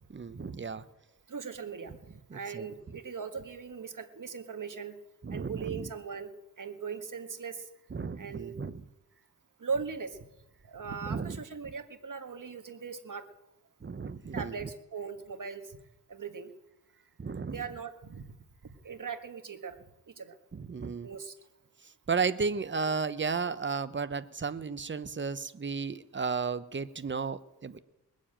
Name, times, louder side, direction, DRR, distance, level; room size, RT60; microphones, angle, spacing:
voice 1, 0.1-0.9 2.3-2.7 5.2-5.9 7.9-8.9 11.0-11.4 13.8-14.7 17.2-17.6 20.5-21.1 21.8-27.8, right 5 dB, 30° right, 13 dB, 0.8 m, -34 dB
voice 2, 1.3-1.9 2.3-5.0 5.3-6.3 6.6-7.7 8.2-8.5 9.6-10.2 10.6-13.2 14.3-15.6 16.1-16.5 17.5-18.3 18.6-19.8 20.1-20.4 21.0-21.3, right 5 dB, 50° right, 7 dB, 1.7 m, -39 dB
20.5 x 7.4 x 8.8 m, 0.95 s
wide cardioid pair, 85°, 39 cm